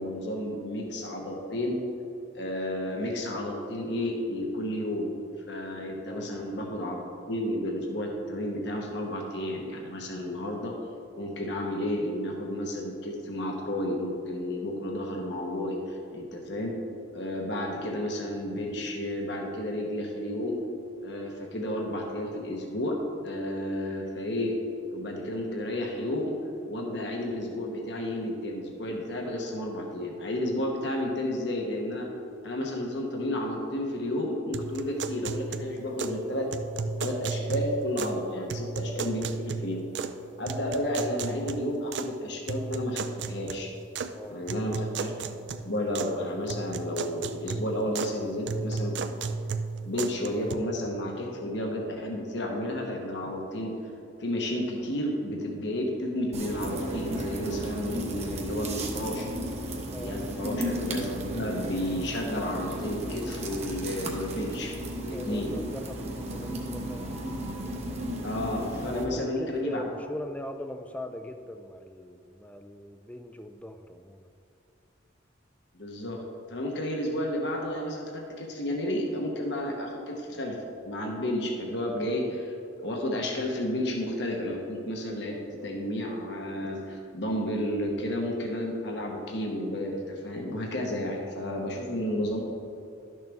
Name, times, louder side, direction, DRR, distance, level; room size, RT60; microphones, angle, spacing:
voice 1, 0.0-1.8 2.3-5.1 5.5-7.0 7.3-10.8 11.2-16.8 17.1-20.6 21.0-23.0 23.2-24.6 24.9-26.4 26.7-32.1 32.4-36.5 37.0-39.8 40.4-43.7 44.3-45.1 45.6-49.0 49.8-53.7 54.2-59.3 59.9-65.5 68.2-69.8 75.7-76.2 76.5-80.6 80.8-82.5 82.8-92.4, left 1 dB, 60° left, 0 dB, 1.1 m, -32 dB
sound 1, 34.5-36.2 36.5-38.2 38.5-40.2 40.5-42.1 42.5-44.1 44.5-46.2 46.5-48.2 48.5-50.5, right 4 dB, 65° right, 0.4 m, -34 dB
voice 2, 44.1-44.4 59.9-60.2 65.1-67.2 68.8-74.3, left 1 dB, 5° left, 8 dB, 0.3 m, -40 dB
sound 2, 56.3-69.0, right 1 dB, 35° right, 1.0 m, -34 dB
12.0 x 6.5 x 3.5 m, 2.7 s
head